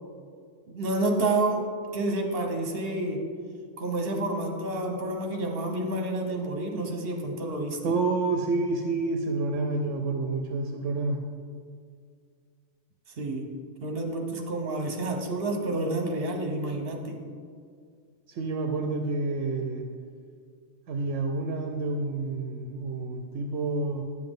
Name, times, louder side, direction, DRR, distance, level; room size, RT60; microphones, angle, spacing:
voice 1, 0.7-1.6 1.9-3.2 3.8-7.8 13.1-13.5 13.8-17.2, right 2 dB, 50° right, 3 dB, 1.2 m, -29 dB
voice 2, 7.8-11.2 18.3-19.8 20.9-24.0, right 3 dB, 75° right, 4 dB, 0.9 m, -29 dB
9.5 x 7.6 x 3.6 m, 2.1 s
omnidirectional pair, 1.3 m